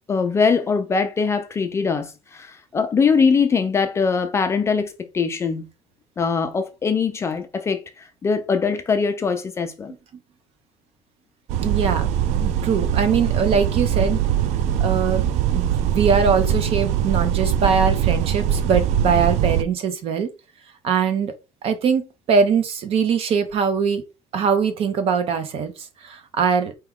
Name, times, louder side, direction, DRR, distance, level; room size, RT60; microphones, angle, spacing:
voice 1, 0.1-5.7 6.2-9.9, left 5 dB, 20° left, 0.4 m, -22 dB
sound 1, 11.5-19.6, right 10 dB, 60° right, 0.4 m, -22 dB
voice 2, 11.6-14.2 14.8-15.2 15.5-20.3 20.8-21.3 21.6-24.0 24.3-25.7 26.0-26.7, right 6 dB, 45° right, 0.8 m, -22 dB
4.6 x 2.9 x 3.6 m
cardioid pair, 180°, 13 cm